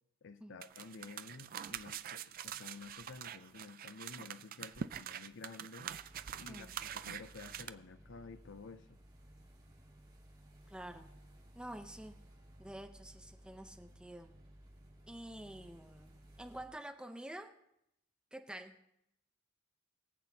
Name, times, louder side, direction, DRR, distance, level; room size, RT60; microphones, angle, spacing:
voice 1, 0.2-5.9 6.4-9.0, left 4 dB, 55° left, 0.6 m, -52 dB
sound 1, 0.6-7.7, right 9 dB, 40° right, 0.3 m, -45 dB
sound 2, 5.8-16.6, equal, 20° right, 4.6 m, -59 dB
voice 2, 10.7-11.0 11.5-12.1 12.6-14.3 15.1-17.5 18.3-18.7, right 1 dB, 5° right, 0.6 m, -48 dB
23.5 x 7.9 x 2.8 m
head